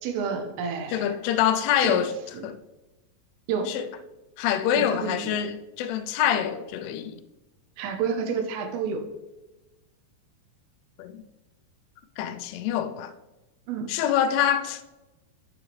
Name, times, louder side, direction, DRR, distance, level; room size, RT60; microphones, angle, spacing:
voice 1, 0.0-1.2 1.8-2.0 3.5-3.7 4.7-5.4 7.8-9.0 13.7-13.9, right 6 dB, 85° right, 2.9 m, -29 dB
voice 2, 0.9-2.1 2.4-2.6 3.7-3.9 4.4-7.2 11.0-11.2 12.2-13.1 13.9-14.8, left 10 dB, 85° left, 2.6 m, -25 dB
7.6 x 6.0 x 3.2 m
omnidirectional pair, 4.6 m